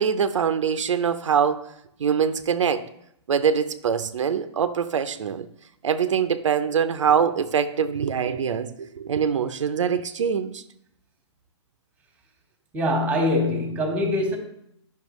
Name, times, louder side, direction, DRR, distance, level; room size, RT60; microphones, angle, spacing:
voice 1, 0.0-1.7 2.0-2.9 3.3-5.5 5.8-10.6, right 7 dB, 90° right, 0.6 m, -23 dB
voice 2, 12.7-14.4, left 1 dB, 10° right, 1.3 m, -23 dB
10.5 x 5.7 x 3.1 m
hypercardioid pair, 150°, 15 cm